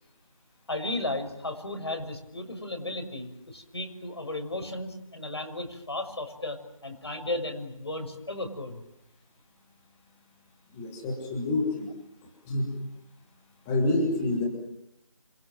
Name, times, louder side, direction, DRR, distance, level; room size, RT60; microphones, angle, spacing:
voice 1, 0.7-8.8, left 2 dB, 50° left, 6 dB, 6.5 m, -34 dB
voice 2, 10.7-11.9 12.4-12.7 13.7-14.5, left 2 dB, 5° left, 1 dB, 1.3 m, -27 dB
29.0 x 27.0 x 7.7 m, 0.82 s
figure-of-eight pair, 175°, 17 cm